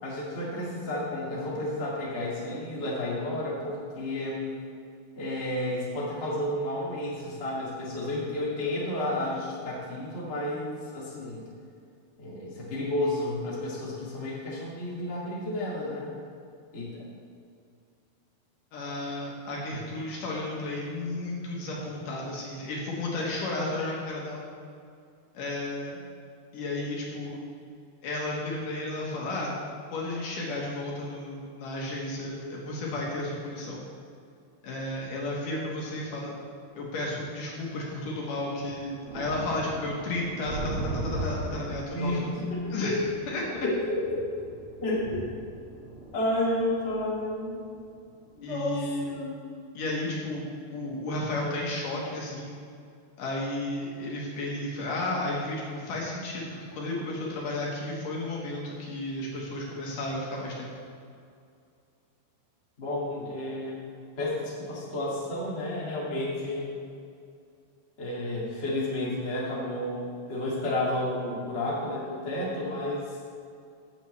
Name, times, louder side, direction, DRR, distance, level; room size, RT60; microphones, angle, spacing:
voice 1, 0.0-4.4 5.1-11.4 12.2-16.1 16.7-17.1 41.9-42.2 42.5-43.0 43.6-44.2 44.8-45.3 46.1-47.6 48.4-49.3 62.8-63.8 64.1-66.7 68.0-73.1, left 1 dB, 90° left, -6 dB, 0.6 m, -31 dB
voice 2, 18.7-24.4 25.3-26.0 26.5-27.4 28.0-29.5 29.9-33.8 34.6-36.3 36.7-42.3 42.7-43.7 48.4-49.2 49.7-50.4 50.7-52.6 53.2-60.7, left 2 dB, 65° left, -3 dB, 2.3 m, -33 dB
sound 1, 38.6-48.5 48.9-49.1, right 2 dB, 85° right, 1.2 m, -39 dB
15.0 x 7.1 x 3.2 m, 2.4 s
omnidirectional pair, 5.2 m